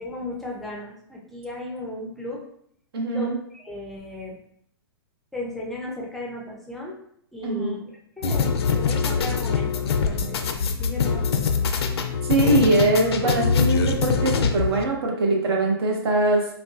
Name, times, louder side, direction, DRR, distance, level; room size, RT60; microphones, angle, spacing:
voice 1, 0.0-2.4 3.1-4.4 5.3-7.0 7.3-7.8 8.2-10.4 10.8-11.5, left 2 dB, ahead, -3 dB, 0.5 m, -35 dB
voice 2, 2.9-3.4 7.4-7.8 12.2-16.5, right 2 dB, 70° right, 1 dB, 0.8 m, -22 dB
sound 1, 8.2-14.8, left 5 dB, 80° left, 0.4 m, -23 dB
3.7 x 2.3 x 2.3 m, 0.69 s
hypercardioid pair, 125°, 13 cm